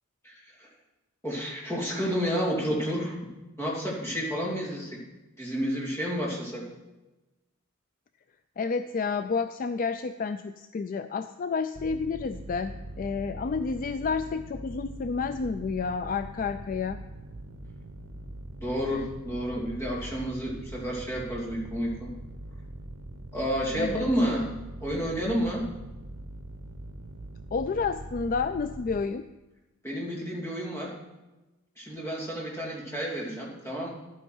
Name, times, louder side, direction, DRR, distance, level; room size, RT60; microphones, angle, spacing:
voice 1, 0.2-0.7 1.2-3.2 3.6-5.0 5.4-6.7 18.6-22.1 23.3-24.5 24.8-25.7 29.8-31.0 31.8-33.9, equal, 15° left, -4 dB, 2.6 m, -30 dB
voice 2, 8.6-17.0 23.8-24.1 27.5-29.2, left 5 dB, 40° left, 10 dB, 0.3 m, -30 dB
sound 1, 11.7-29.0, right 1 dB, 80° right, 0.9 m, -42 dB
11.5 x 9.3 x 4.6 m, 1.1 s
head